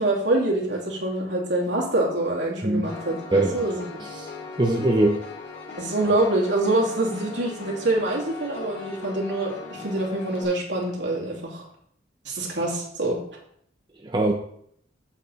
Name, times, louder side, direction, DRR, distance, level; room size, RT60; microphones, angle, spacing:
voice 1, 0.0-3.8 5.8-11.7 12.2-13.2, right 2 dB, 70° right, -3 dB, 2.8 m, -25 dB
Piano, 2.8-10.4, left 4 dB, 60° left, 2.8 m, -39 dB
voice 2, 4.6-5.2 14.0-14.3, right 1 dB, 25° right, 0 dB, 0.9 m, -21 dB
8.4 x 7.1 x 4.2 m, 0.68 s
head